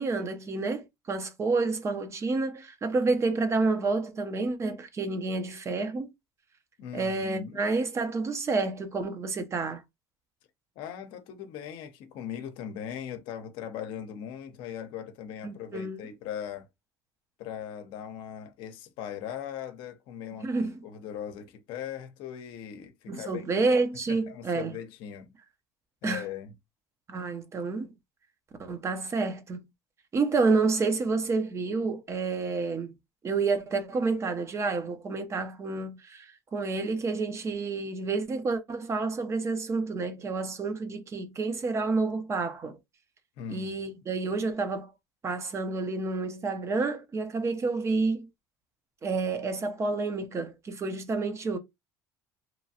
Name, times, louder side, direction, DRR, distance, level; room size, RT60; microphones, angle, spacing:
voice 1, 0.0-6.1 6.9-9.8 15.4-16.0 20.4-20.8 23.1-24.7 26.0-26.3 27.1-27.9 28.6-29.7 30.1-32.9 33.2-42.8 43.5-44.9 45.2-48.3 49.0-51.6, right 3 dB, 30° right, 0.6 m, -29 dB
voice 2, 6.8-7.6 10.8-16.7 17.4-20.5 20.8-23.4 24.1-25.3 26.0-26.5 43.4-43.9, left 9 dB, 70° left, 0.6 m, -39 dB
2.9 x 2.3 x 2.7 m
supercardioid pair, 100°, 9 cm